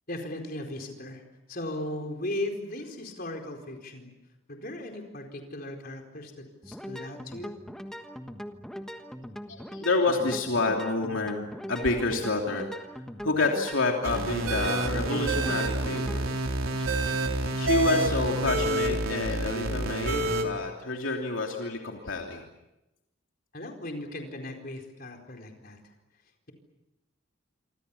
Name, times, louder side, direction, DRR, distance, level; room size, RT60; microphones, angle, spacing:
voice 1, 0.1-1.2 1.5-4.1 4.5-7.6 23.5-25.8, left 1 dB, 45° left, 3 dB, 4.4 m, -37 dB
sound 1, 6.6-16.2, equal, 5° left, 1.4 m, -41 dB
voice 2, 9.5-12.7 13.2-16.3 17.1-17.2 17.6-22.4, left 3 dB, 70° left, 1 dB, 3.1 m, -28 dB
sound 2, 14.0-20.4, right 2 dB, 85° right, 3.5 m, -28 dB
27.5 x 25.5 x 7.1 m, 0.95 s
head